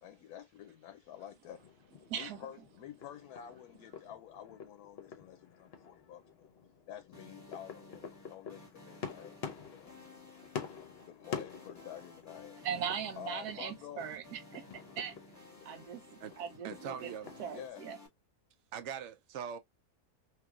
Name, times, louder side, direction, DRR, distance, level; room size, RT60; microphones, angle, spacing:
voice 1, 0.0-1.6 2.1-6.5 6.9-9.4 9.7-9.9 11.0-12.6 13.2-14.1 17.5-17.8, left 10 dB, 75° left, 1.0 m, -49 dB
sound 1, 1.5-17.7, left 6 dB, 50° left, 0.8 m, -48 dB
voice 2, 2.1-2.4 12.6-15.2 15.6-17.1 17.4-18.0, right 8 dB, 85° right, 1.3 m, -40 dB
sound 2, 7.1-18.1, left 2 dB, 10° left, 1.2 m, -56 dB
voice 3, 16.6-17.4 18.7-19.6, right 8 dB, 60° right, 0.8 m, -41 dB
3.3 x 3.0 x 2.3 m
omnidirectional pair, 1.6 m